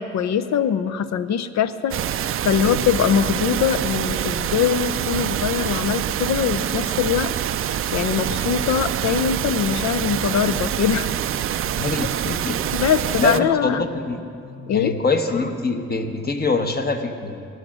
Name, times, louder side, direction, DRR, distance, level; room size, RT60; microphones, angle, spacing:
voice 1, 0.0-2.0 2.4-7.3 7.9-11.1 12.7-13.9 14.6-15.0, left 8 dB, 65° left, 13 dB, 0.7 m, -22 dB
sound 1, 1.9-13.4, right 10 dB, 45° right, 0.4 m, -25 dB
voice 2, 11.8-12.6 13.2-14.2 14.7-17.5, left 3 dB, 30° left, 6 dB, 1.1 m, -24 dB
19.5 x 6.5 x 6.2 m, 2.4 s
cardioid pair, 90°, 30 cm